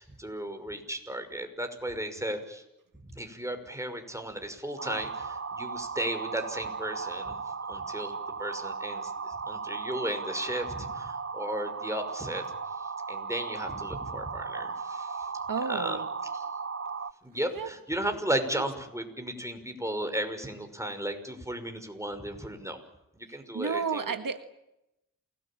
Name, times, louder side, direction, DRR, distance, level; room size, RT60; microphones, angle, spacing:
voice 1, 0.0-2.6 3.1-7.4 7.7-12.4 12.8-15.3 15.7-16.0 16.3-16.5 17.2-22.8 23.1-24.1, right 1 dB, 10° right, 6 dB, 5.9 m, -35 dB
sound 1, 4.8-17.1, right 5 dB, 40° right, 1.0 m, -36 dB
voice 2, 15.5-16.1 17.5-17.7 18.6-18.7 23.5-24.4, right 5 dB, 70° right, 9 dB, 1.7 m, -31 dB
28.5 x 19.5 x 8.9 m, 0.88 s
cardioid pair, 50°, 34 cm